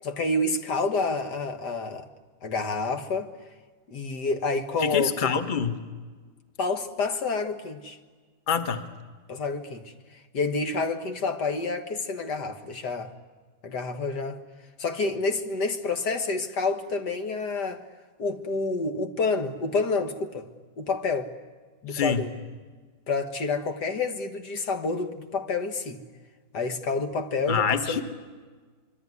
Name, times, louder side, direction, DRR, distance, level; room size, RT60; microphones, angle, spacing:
voice 1, 0.0-2.1 2.4-3.3 3.9-5.3 6.6-8.0 9.3-9.9 10.3-13.1 13.6-14.4 14.8-17.8 18.2-20.5 20.8-21.3 21.8-22.3 23.1-26.0 26.5-28.0, left 3 dB, 80° left, 2.2 m, -28 dB
voice 2, 4.8-5.8 8.5-8.8 21.9-22.2 27.5-28.0, left 6 dB, 30° left, 1.4 m, -26 dB
25.5 x 23.5 x 9.6 m
omnidirectional pair, 1.8 m